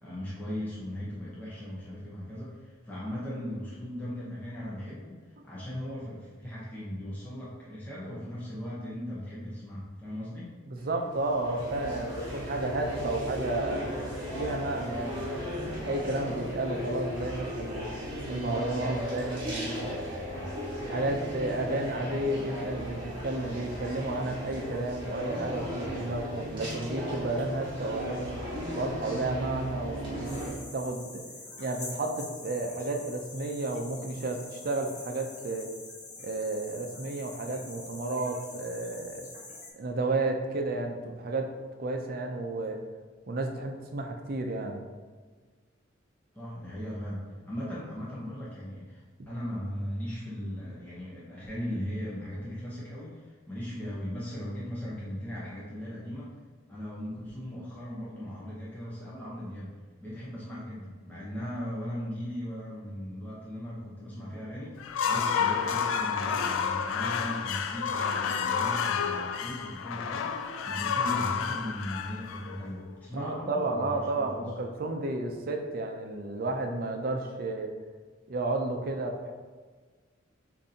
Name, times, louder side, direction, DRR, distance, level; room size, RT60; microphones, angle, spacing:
voice 1, 0.0-10.5 20.4-20.5 46.3-56.3 56.7-74.5, equal, 10° left, -8 dB, 0.7 m, -38 dB
voice 2, 10.7-13.9 14.3-17.9 18.3-20.4 20.9-28.3 28.8-31.2 31.6-35.7 36.2-39.3 39.7-41.5 41.8-42.8 43.3-44.8 73.1-77.7 78.3-79.3, right 2 dB, 50° right, 4 dB, 0.5 m, -32 dB
sound 1, 10.8-30.5, equal, 25° right, 1.5 m, -36 dB
sound 2, 30.2-39.7, left 2 dB, 35° left, 1.0 m, -45 dB
sound 3, 64.8-72.9, left 6 dB, 90° left, 0.3 m, -30 dB
7.1 x 2.6 x 2.8 m, 1.5 s
head